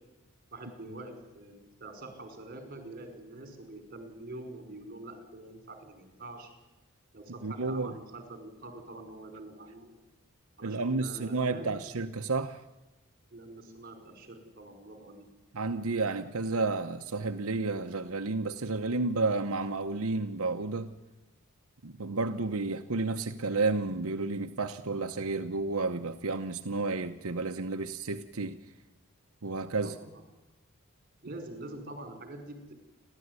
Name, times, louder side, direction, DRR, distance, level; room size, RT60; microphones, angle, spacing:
voice 1, 0.5-6.5 7.1-9.9 10.6-11.8 13.3-15.3 29.8-30.2 31.2-32.7, right 2 dB, 45° right, 5.3 m, -45 dB
voice 2, 7.4-7.9 10.6-12.6 15.5-20.9 21.8-28.6 29.4-29.9, right 3 dB, 90° right, 1.0 m, -31 dB
29.5 x 13.0 x 9.7 m
head